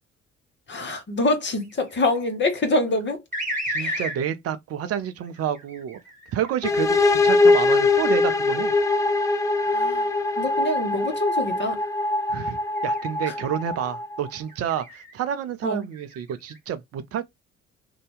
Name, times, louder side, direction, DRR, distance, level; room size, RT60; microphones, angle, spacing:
voice 1, 0.7-3.2 3.8-4.0 9.6-10.1 10.4-11.8 15.6-15.8, left 2 dB, 30° left, 1.0 m, -25 dB
sound 1, 1.5-2.3 3.3-4.2 5.2-7.1 7.7-11.1 11.5-11.9 12.7-13.7 14.4-15.1 15.6-16.6, equal, 20° right, 1.4 m, -36 dB
voice 2, 3.7-6.0 6.3-8.7 12.3-17.2, right 9 dB, 40° right, 0.5 m, -29 dB
sound 2, 6.6-14.3, left 3 dB, 10° left, 0.3 m, -22 dB
2.7 x 2.2 x 3.2 m
figure-of-eight pair, 45°, 37 cm